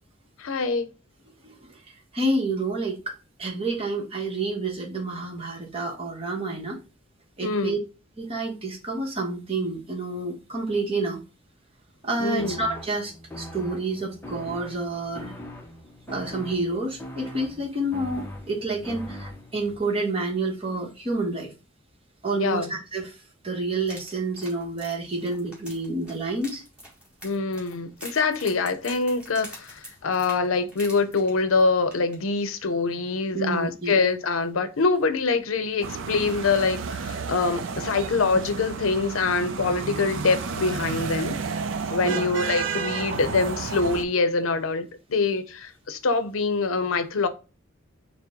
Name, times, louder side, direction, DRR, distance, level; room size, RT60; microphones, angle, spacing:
voice 1, 0.4-0.9 7.4-7.7 12.2-12.6 22.4-22.7 27.2-41.4 41.9-47.3, left 4 dB, 85° left, 0.6 m, -25 dB
voice 2, 2.1-6.8 7.4-7.8 8.2-11.2 12.0-15.3 16.1-21.5 22.2-23.1 23.4-26.6 33.3-33.9 42.0-42.3 43.1-43.2, right 2 dB, 30° right, 1.0 m, -29 dB
sound 1, 12.4-19.8, equal, 10° left, 0.6 m, -41 dB
sound 2, 23.9-31.6 31.9-32.2 32.5-32.6, equal, 5° right, 1.6 m, -45 dB
sound 3, 35.8-44.0, right 5 dB, 65° right, 0.4 m, -31 dB
4.4 x 2.1 x 3.5 m
head